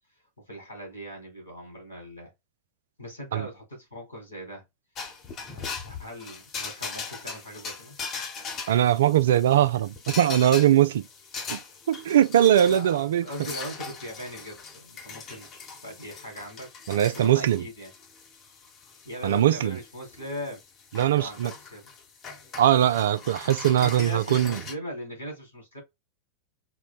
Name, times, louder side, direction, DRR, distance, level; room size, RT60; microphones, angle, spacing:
voice 1, 0.4-2.3 3.0-4.6 5.5-8.0 12.6-15.5 15.8-16.7 17.1-17.9 19.0-20.6 20.9-21.9 23.2-23.3 23.8-25.8, equal, 85° left, 1.8 m, -39 dB
sound 1, 4.9-24.7, left 5 dB, 30° left, 0.9 m, -40 dB
voice 2, 8.7-11.0 11.5-11.6 11.9-13.3 16.9-17.6 19.2-19.8 20.9-21.5 22.6-24.6, right 11 dB, 60° right, 0.3 m, -21 dB
4.2 x 2.1 x 2.4 m
figure-of-eight pair, 90°, 0 cm